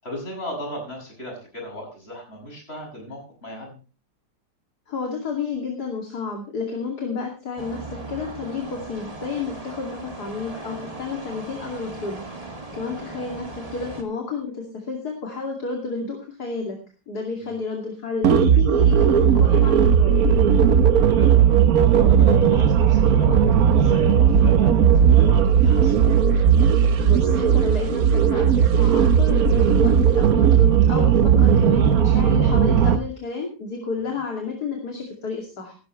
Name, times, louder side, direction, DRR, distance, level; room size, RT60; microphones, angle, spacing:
voice 1, 0.0-3.7 13.0-13.2 17.4-17.6 21.1-26.1, equal, 30° left, 0 dB, 7.6 m, -37 dB
voice 2, 4.9-12.2 12.7-16.8 17.1-20.2 27.0-35.7, left 4 dB, 55° left, 1 dB, 3.0 m, -31 dB
sound 1, 7.6-14.0, right 2 dB, 20° right, 2.5 m, -38 dB
sound 2, 18.2-33.0, right 8 dB, 55° right, 1.3 m, -16 dB
16.0 x 13.5 x 3.2 m, 0.33 s
omnidirectional pair, 2.0 m